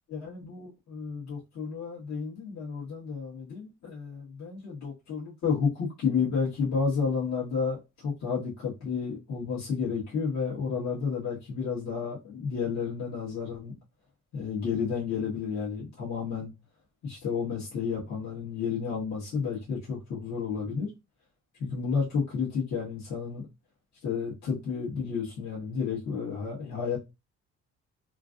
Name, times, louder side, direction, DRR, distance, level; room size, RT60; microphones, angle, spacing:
voice 1, 0.1-13.7 14.3-16.5 17.0-20.9 21.6-23.4 24.0-27.0, left 6 dB, 70° left, 1.5 m, -31 dB
3.1 x 2.5 x 2.5 m
cardioid pair, 90°, 29 cm